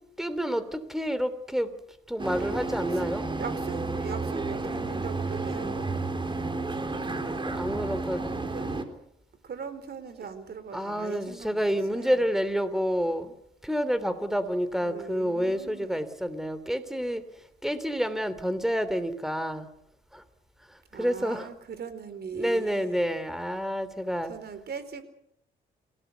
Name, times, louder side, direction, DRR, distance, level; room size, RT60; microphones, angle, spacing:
voice 1, 0.2-1.7 2.1-3.3 7.4-8.2 10.7-13.3 13.6-17.2 17.6-19.7 20.1-20.2 20.7-21.5 22.3-24.3, equal, ahead, 13 dB, 3.2 m, -29 dB
sound 1, 2.2-8.8, right 3 dB, 25° right, 3.6 m, -31 dB
voice 2, 3.3-5.9 8.5-8.7 9.4-12.3 14.8-16.1 20.9-23.0 24.3-25.0, right 6 dB, 55° right, 12 dB, 4.2 m, -40 dB
27.5 x 17.5 x 8.2 m, 0.75 s
cardioid pair, 90°, 20 cm